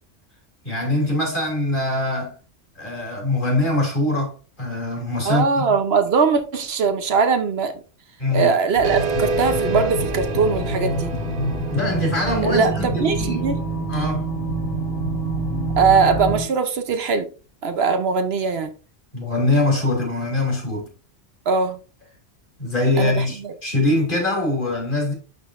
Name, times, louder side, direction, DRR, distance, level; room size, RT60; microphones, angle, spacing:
voice 1, 0.6-2.3 2.8-5.7 8.2-8.5 11.7-13.4 13.9-14.3 19.1-20.9 22.6-25.1, left 2 dB, 50° left, 2.8 m, -23 dB
voice 2, 5.2-7.8 8.3-11.1 12.4-13.6 15.8-17.3 17.6-18.7 21.5-21.8 23.0-23.5, right 5 dB, 65° right, 1.0 m, -21 dB
sound 1, 8.8-16.4, right 2 dB, 65° left, 1.8 m, -26 dB
sound 2, 8.8-13.9, right 4 dB, 45° right, 0.7 m, -29 dB
11.5 x 3.8 x 2.5 m
omnidirectional pair, 1.1 m